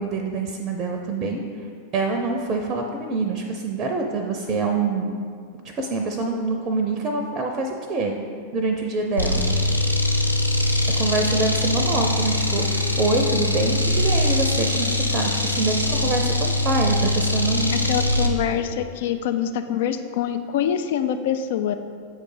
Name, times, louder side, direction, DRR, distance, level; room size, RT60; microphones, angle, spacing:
voice 1, 0.0-1.4 1.9-5.2 5.8-8.2 8.5-9.5 11.0-17.7, right 3 dB, 30° right, 3 dB, 0.5 m, -25 dB
sound 1, 9.2-18.4, left 2 dB, 90° right, 0.5 m, -22 dB
voice 2, 17.7-21.8, left 9 dB, 55° left, 9 dB, 0.3 m, -25 dB
7.5 x 3.2 x 5.0 m, 2.2 s
figure-of-eight pair, 90°, 0 cm